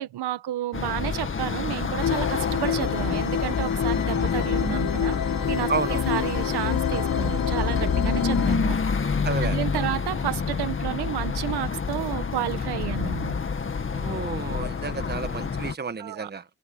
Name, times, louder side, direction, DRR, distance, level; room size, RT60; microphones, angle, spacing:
voice 1, 0.0-5.2 5.5-5.7 6.1-13.4 16.0-16.3, right 13 dB, 85° right, 1.6 m, -31 dB
sound 1, 0.7-15.7, left 5 dB, 30° left, 2.0 m, -28 dB
sound 2, 2.0-8.6, left 8 dB, 60° left, 3.9 m, -27 dB
voice 2, 5.7-6.0 9.2-9.9 13.9-16.4, right 5 dB, 25° right, 1.4 m, -31 dB
cardioid pair, 115°, 38 cm